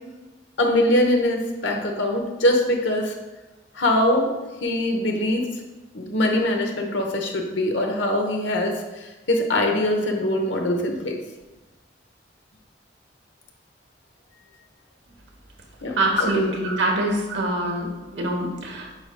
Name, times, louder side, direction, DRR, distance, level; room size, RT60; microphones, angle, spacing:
voice 1, 0.6-3.1 3.7-4.3 4.6-5.5 5.9-11.1 15.8-16.7, left 1 dB, 85° left, 2 dB, 1.0 m, -23 dB
voice 2, 16.0-17.9 18.1-18.9, right 1 dB, 80° right, 1 dB, 1.2 m, -24 dB
8.7 x 5.1 x 2.3 m, 1.1 s
head